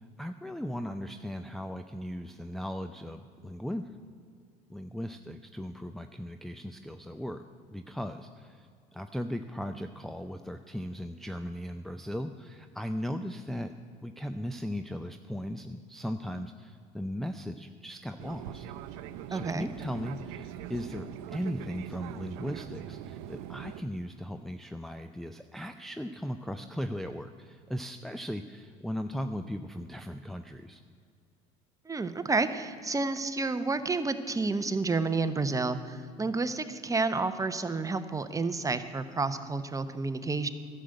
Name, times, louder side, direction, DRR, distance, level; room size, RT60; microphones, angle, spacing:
voice 1, 0.0-3.9 4.7-7.4 7.7-13.7 14.0-18.7 19.3-30.8, equal, ahead, 7 dB, 0.5 m, -37 dB
Fixed-wing aircraft airplane, 18.2-23.8, right 11 dB, 75° right, 0.6 m, -42 dB
voice 2, 19.3-19.7 31.8-40.5, right 3 dB, 20° right, 11 dB, 0.8 m, -30 dB
11.5 x 6.7 x 9.0 m, 2.3 s
hypercardioid pair, 75°, 18 cm